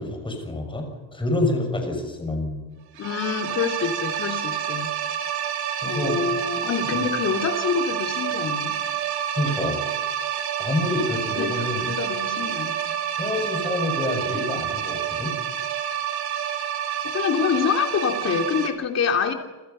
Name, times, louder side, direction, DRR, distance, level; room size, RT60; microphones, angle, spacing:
voice 1, 0.0-2.6 5.8-6.2 6.9-7.0 9.4-9.8 10.6-11.9 13.2-15.3, left 2 dB, 10° left, 4 dB, 6.5 m, -27 dB
voice 2, 3.0-5.0 5.8-8.8 11.4-11.5 11.8-12.8 17.1-19.3, left 6 dB, 30° left, 4 dB, 3.0 m, -26 dB
sound 1, 3.0-18.7, right 9 dB, 50° right, 3.3 m, -28 dB
29.0 x 27.5 x 5.7 m, 1.2 s
cardioid pair, 170°, 50 cm